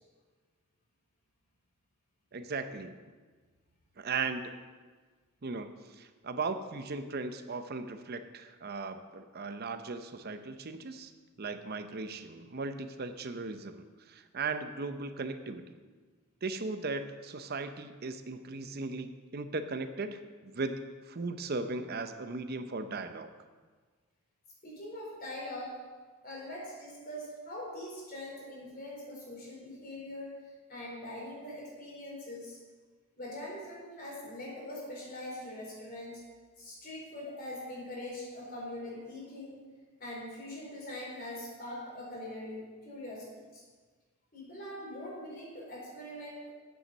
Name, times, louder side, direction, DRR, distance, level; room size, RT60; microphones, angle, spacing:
voice 1, 2.3-2.9 4.0-4.5 5.4-11.1 11.4-15.8 16.4-23.3, right 3 dB, 45° right, 9 dB, 0.7 m, -37 dB
voice 2, 24.6-25.8 26.2-30.3 30.7-32.6 33.2-36.2 36.6-39.6 40.0-43.6 44.3-46.5, left 1 dB, 45° left, -4 dB, 4.1 m, -42 dB
9.0 x 8.2 x 6.7 m, 1.4 s
head